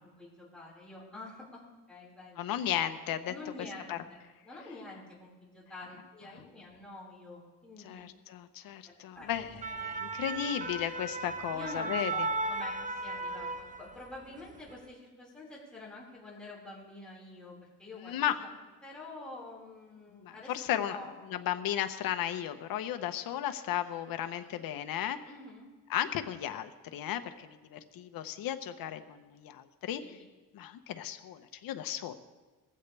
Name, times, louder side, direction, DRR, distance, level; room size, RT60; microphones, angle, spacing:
voice 1, 0.0-2.5 3.3-4.2 4.4-8.0 8.8-9.3 11.5-18.5 18.8-20.6 20.8-21.4 25.3-25.7 30.0-30.2, left 2 dB, 5° left, -6 dB, 4.9 m, -47 dB
voice 2, 2.4-3.3 3.9-4.0 7.8-12.3 18.0-18.4 20.2-21.0 21.3-25.2 25.9-30.2 30.5-32.1, left 11 dB, 85° left, 8 dB, 1.0 m, -35 dB
sound 1, 9.4-14.1 14.5-14.7, right 3 dB, 20° right, 0.9 m, -36 dB
19.5 x 15.5 x 3.4 m, 1.3 s
cardioid pair, 140°, 34 cm